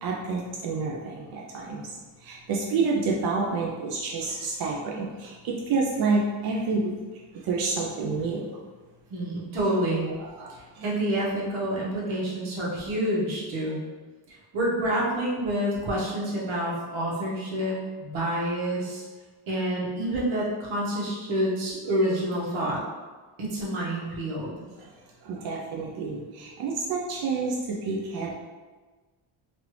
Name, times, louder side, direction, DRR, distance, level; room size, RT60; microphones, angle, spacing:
voice 1, 0.0-7.0 7.4-8.5 10.2-10.8 24.8-24.9 25.2-28.3, right 4 dB, 50° right, -2 dB, 0.5 m, -29 dB
voice 2, 9.1-10.1 10.5-13.8 14.3-19.0 19.5-22.8 23.4-24.5, right 1 dB, 80° right, -5 dB, 1.1 m, -28 dB
3.2 x 2.5 x 3.0 m, 1.3 s
cardioid pair, 150°, 47 cm